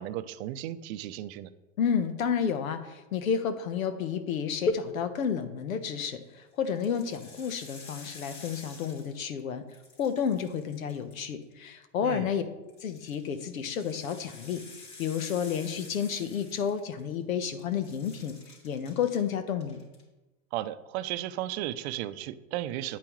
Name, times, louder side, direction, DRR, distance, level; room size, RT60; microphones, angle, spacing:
voice 1, 0.0-1.5 12.0-12.3 20.5-23.0, right 13 dB, 55° right, 13 dB, 0.6 m, -35 dB
voice 2, 1.8-9.6 10.0-12.4 12.8-19.8, left 7 dB, 85° left, 10 dB, 1.1 m, -31 dB
sound 1, 5.8-6.2 6.6-9.4 9.7-11.5 12.7-17.2 17.5-19.2 19.6-20.0, left 3 dB, 45° left, 3.3 m, -50 dB
9.1 x 8.6 x 3.1 m, 1.1 s
hypercardioid pair, 115°, 40 cm